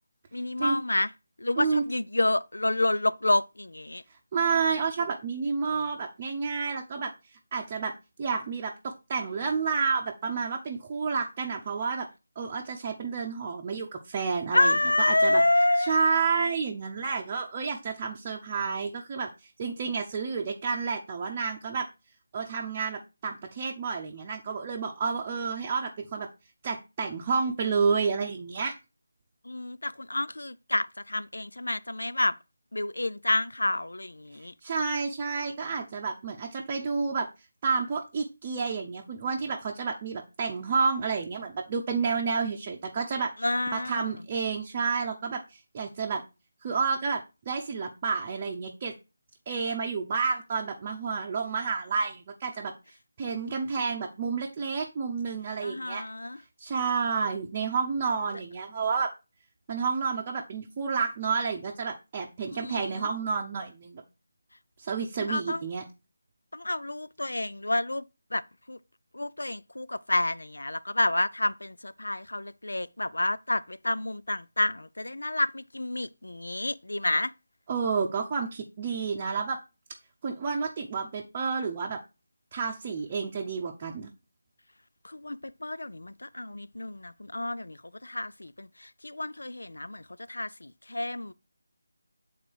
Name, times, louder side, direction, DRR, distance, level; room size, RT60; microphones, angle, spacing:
voice 1, 0.3-1.1 1.4-4.0 14.5-15.9 29.4-32.3 32.7-34.5 43.4-44.2 55.6-56.4 62.5-63.1 65.2-65.6 66.5-68.0 68.3-68.4 68.7-68.8 69.1-77.3 85.0-91.3, left 2 dB, 85° left, 0.4 m, -29 dB
voice 2, 4.3-7.9 8.2-12.1 12.4-14.7 15.1-15.4 15.8-19.3 19.6-21.9 22.3-26.3 26.6-28.8 34.6-37.3 37.6-43.3 43.7-46.2 46.6-47.2 47.5-48.9 49.5-52.7 53.2-56.0 56.6-59.1 59.7-64.0 64.8-65.8 77.7-79.6 80.2-82.0 82.5-84.1, right 5 dB, 25° right, 0.7 m, -30 dB
7.6 x 3.9 x 4.6 m
figure-of-eight pair, 160°, 0 cm